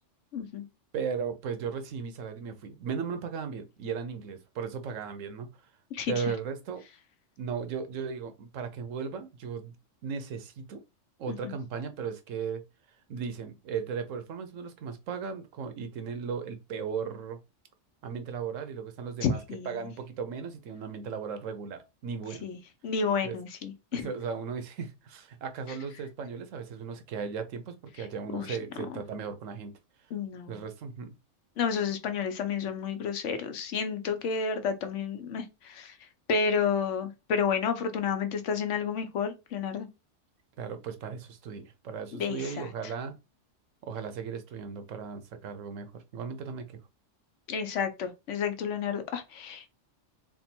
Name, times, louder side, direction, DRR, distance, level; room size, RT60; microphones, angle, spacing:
voice 1, 0.3-0.6 5.9-6.1 11.3-11.5 19.2-19.9 22.4-22.6 22.8-24.1 28.0-28.1 28.3-28.6 30.1-30.6 31.6-35.9 36.3-39.9 42.1-42.7 47.5-49.7, left 6 dB, 70° left, 1.0 m, -31 dB
voice 2, 0.9-5.5 6.1-6.8 7.4-9.7 10.0-10.8 11.2-12.6 13.1-17.4 18.0-19.4 19.6-22.5 23.2-23.4 23.9-29.8 30.5-31.1 40.6-43.2 43.8-46.8, right 6 dB, 85° right, 1.1 m, -36 dB
3.4 x 2.2 x 4.3 m
omnidirectional pair, 1.3 m